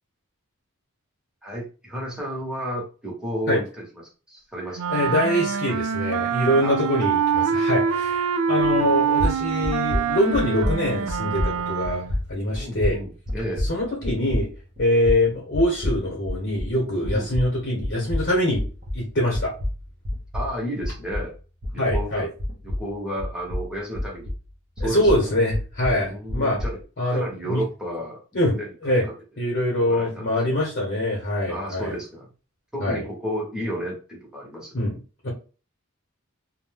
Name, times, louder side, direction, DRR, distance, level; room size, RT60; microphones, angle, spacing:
voice 1, 1.4-4.0 4.3-5.1 6.6-6.8 8.7-8.9 12.6-13.7 17.0-17.3 20.3-21.4 21.7-22.3 22.6-24.3 24.8-25.4 26.0-28.9 29.8-30.4 31.5-32.3 32.7-34.7, equal, 5° right, -3 dB, 0.9 m, -32 dB
Wind instrument woodwind instrument, 4.7-12.2, right 6 dB, 80° right, 0.3 m, -25 dB
voice 2, 4.9-12.0 12.3-13.0 13.6-14.5 14.8-18.6 18.9-19.5 21.8-22.3 24.8-26.6 27.0-27.6 28.3-28.5 28.8-29.0 29.4-32.0 32.8-33.0 34.7-35.0 35.2-35.3, left 1 dB, 50° left, -3 dB, 1.0 m, -24 dB
sound 1, 8.9-9.0 9.2-16.8 17.0-21.4 21.6-24.5 24.8-26.8, left 1 dB, 40° right, 0.8 m, -29 dB
2.6 x 2.1 x 3.4 m, 0.36 s
head